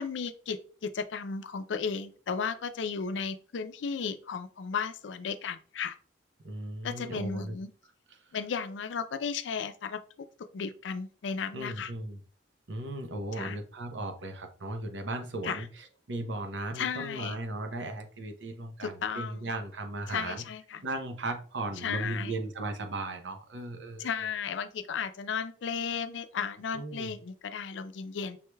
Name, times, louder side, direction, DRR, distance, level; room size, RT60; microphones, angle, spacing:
voice 1, 0.0-6.0 6.8-7.7 8.3-10.0 10.5-11.9 13.4-13.6 15.4-15.6 16.8-17.4 18.8-19.4 20.1-20.8 21.8-22.3 24.0-28.4, left 6 dB, 85° left, 0.4 m, -34 dB
voice 2, 6.4-7.6 8.1-8.3 11.5-12.2 12.7-20.4 20.8-24.1 26.7-27.1, right 2 dB, 80° right, 0.7 m, -37 dB
5.5 x 3.1 x 2.2 m
head